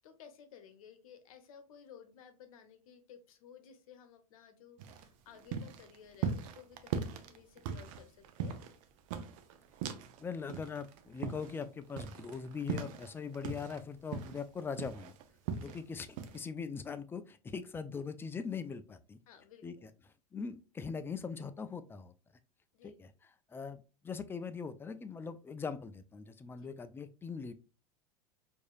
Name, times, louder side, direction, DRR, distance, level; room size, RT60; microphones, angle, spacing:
voice 1, 0.0-8.6 15.5-15.8 19.3-19.7 22.7-23.0 26.6-26.7, left 8 dB, 70° left, 8 dB, 0.8 m, -56 dB
sound 1, 4.8-10.2 10.5-13.8 14.1-15.8 16.2-16.4, right 6 dB, 60° right, 0.6 m, -39 dB
voice 2, 10.2-15.1 15.6-19.2 19.6-19.9 20.3-22.1 22.8-23.1 23.5-27.5, left 5 dB, 10° left, 11 dB, 0.4 m, -41 dB
4.7 x 2.7 x 2.3 m, 0.32 s
hypercardioid pair, 90°, 19 cm